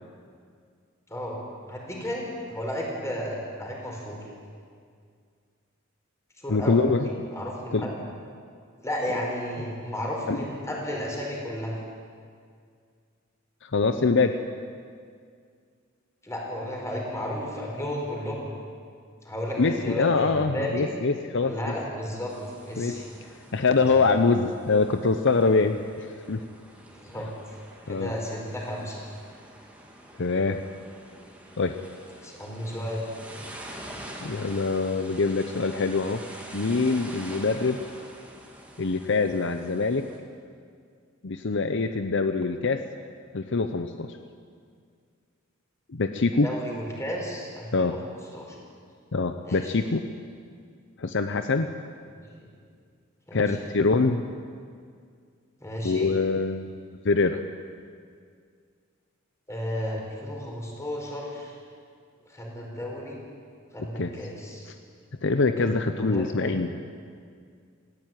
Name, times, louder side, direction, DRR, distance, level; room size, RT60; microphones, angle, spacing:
voice 1, 1.7-4.3 6.4-6.8 7.3-7.9 8.8-11.7 16.2-18.5 19.2-20.9 21.4-22.3 22.6-23.0 24.0-24.2 26.9-27.6 27.8-29.0 32.2-33.1 46.4-48.0 48.3-48.6 49.4-49.8 52.1-52.5 53.3-53.7 55.6-56.1 59.5-61.6 62.3-63.2 63.7-64.7 65.6-66.6, equal, 15° left, -1 dB, 5.0 m, -33 dB
voice 2, 6.5-7.3 7.7-7.9 10.3-10.5 13.6-14.4 19.6-21.5 22.8-23.0 23.5-26.4 27.9-28.1 30.2-30.6 31.6-31.8 34.2-36.2 36.5-37.8 38.8-40.0 41.2-42.8 43.3-44.1 45.9-46.5 47.7-48.0 49.1-50.1 51.0-51.7 53.3-54.2 55.8-57.4 64.0-64.1 65.2-66.8, left 3 dB, 60° left, 8 dB, 0.8 m, -24 dB
sound 1, 22.3-40.2, right 1 dB, 5° right, 2.7 m, -45 dB
18.5 x 15.5 x 9.2 m, 2.2 s
head